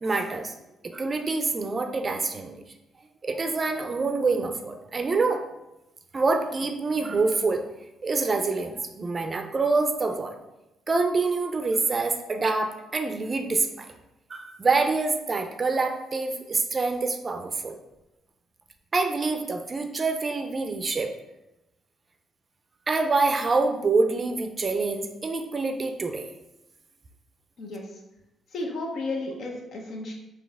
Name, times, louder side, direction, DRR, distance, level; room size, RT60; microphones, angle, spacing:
voice 1, 0.0-0.5 0.8-2.5 3.2-5.4 6.1-7.6 8.0-10.3 10.9-13.9 14.3-17.8 18.9-21.1 22.9-26.3, right 3 dB, 35° right, 6 dB, 0.4 m, -26 dB
voice 2, 28.5-30.1, left 2 dB, 60° left, 1 dB, 0.8 m, -33 dB
4.2 x 2.7 x 3.4 m, 0.94 s
cardioid pair, 90°, 0 cm